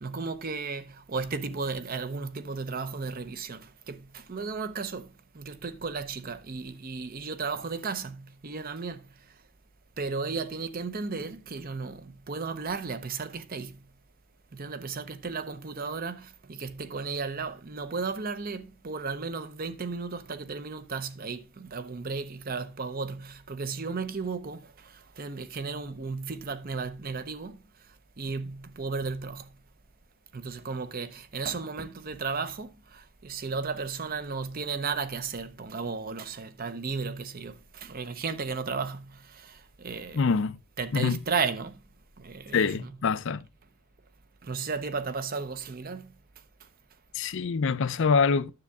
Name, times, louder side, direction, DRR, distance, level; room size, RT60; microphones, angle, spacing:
voice 1, 0.0-5.1 5.3-9.0 10.0-13.8 14.5-24.6 25.2-27.6 28.2-29.5 30.3-40.2 40.8-41.7 42.2-43.0 44.4-46.1, right 4 dB, 40° right, 0.7 m, -34 dB
voice 2, 40.1-40.6 40.9-41.2 42.5-43.4 47.1-48.5, left 5 dB, 55° left, 0.5 m, -25 dB
9.9 x 7.0 x 3.4 m
head